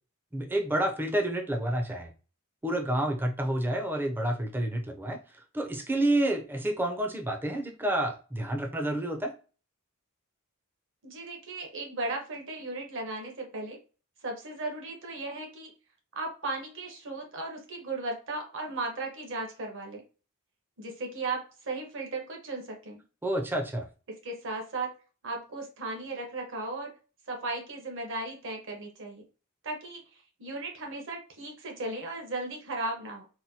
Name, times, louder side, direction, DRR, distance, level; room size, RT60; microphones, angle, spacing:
voice 1, 0.3-2.1 2.6-5.2 5.5-9.3 23.2-23.9, right 1 dB, 10° right, 3 dB, 0.5 m, -29 dB
voice 2, 11.0-13.8 14.2-15.7 16.1-20.0 20.8-23.0 24.1-24.9 25.2-26.9 27.3-29.2 29.6-30.0 30.4-33.2, right 2 dB, 60° right, 1 dB, 1.0 m, -36 dB
4.2 x 2.2 x 2.7 m, 0.35 s
head